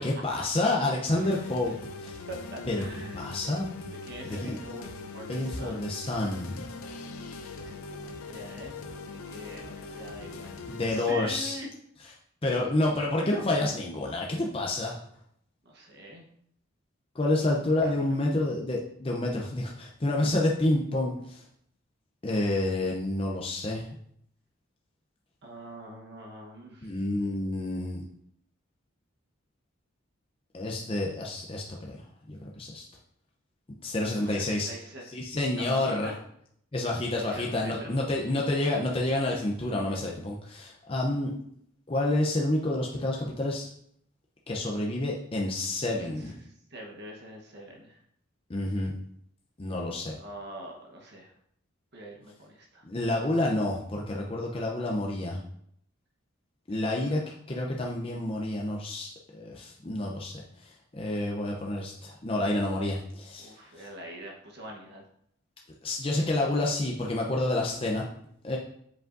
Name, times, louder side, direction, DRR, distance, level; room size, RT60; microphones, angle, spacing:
voice 1, 0.0-1.7 2.0-2.2 2.7-2.9 3.1-3.7 4.2-4.6 5.3-6.6 10.7-11.6 12.4-15.0 17.1-21.4 22.2-23.9 26.8-28.0 30.5-32.0 32.3-32.8 33.8-34.7 35.1-36.1 36.7-41.3 41.9-43.7 44.5-46.4 48.5-48.9 49.6-50.1 52.8-55.4 56.7-57.2 57.5-63.6 65.8-68.0 68.4-68.6, left 2 dB, 25° left, -1 dB, 0.6 m, -29 dB
sound 1, 1.1-11.1, left 3 dB, 90° left, 0.5 m, -41 dB
voice 2, 1.1-1.7 2.3-3.2 4.0-5.9 7.4-11.7 15.6-16.3 17.5-18.2 25.4-26.9 34.2-35.1 35.6-36.2 37.1-38.0 46.0-48.0 50.1-51.3 51.9-52.8 56.7-57.3 63.4-65.0, right 1 dB, 50° right, 0 dB, 1.0 m, -44 dB
7.7 x 5.0 x 2.5 m, 0.69 s
head